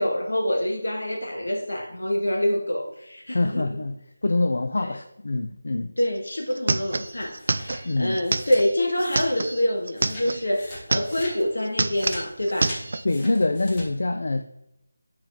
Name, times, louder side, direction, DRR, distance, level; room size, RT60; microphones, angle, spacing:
voice 1, 0.0-3.7 4.8-4.9 6.0-12.8, left 1 dB, 80° left, 1 dB, 1.7 m, -26 dB
voice 2, 3.3-5.9 7.8-8.2 13.0-14.4, left 2 dB, 60° left, 7 dB, 0.5 m, -25 dB
sound 1, 6.0-6.1 6.3-10.4 10.8-11.4 11.6-13.0, right 3 dB, 55° right, 0.4 m, -28 dB
sound 2, 6.9-9.6 9.9-13.9, left 1 dB, 15° left, 1.4 m, -41 dB
7.2 x 4.6 x 3.6 m, 0.86 s
figure-of-eight pair, 170°, 0 cm